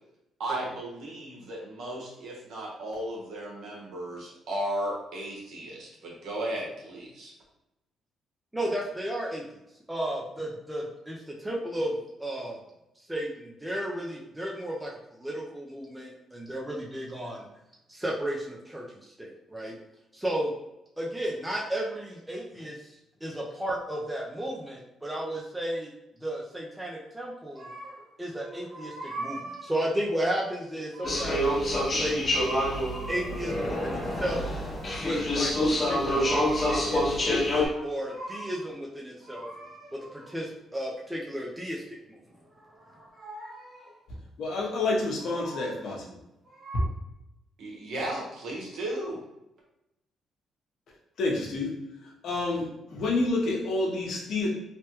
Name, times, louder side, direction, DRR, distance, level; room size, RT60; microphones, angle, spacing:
voice 1, 0.4-7.3 47.6-49.2, right 1 dB, 70° right, -3 dB, 1.1 m, -35 dB
voice 2, 8.5-9.4 9.9-12.6 13.0-17.5 17.9-19.7 20.1-20.5 21.0-22.9 23.2-25.9 26.2-27.7 28.2-32.2 33.1-34.5 35.0-35.5 35.8-36.4 36.7-39.5 39.9-41.8 42.1-42.2, right 1 dB, 10° right, -2 dB, 0.5 m, -33 dB
sound 1, 27.5-28.1 28.4-30.1 30.7-31.9 32.8-34.2 35.7-37.0 37.5-38.7 39.2-40.5 42.3-44.0 44.8-45.9 46.5-46.8, right 1 dB, 40° right, 1.1 m, -42 dB
sound 2, 31.0-37.7, left 1 dB, 35° left, 0.8 m, -27 dB
voice 3, 44.4-46.0 46.7-46.8 51.2-54.5, left 2 dB, 70° left, -2 dB, 0.8 m, -29 dB
3.3 x 2.1 x 3.0 m, 0.90 s
cardioid pair, 90°, 0 cm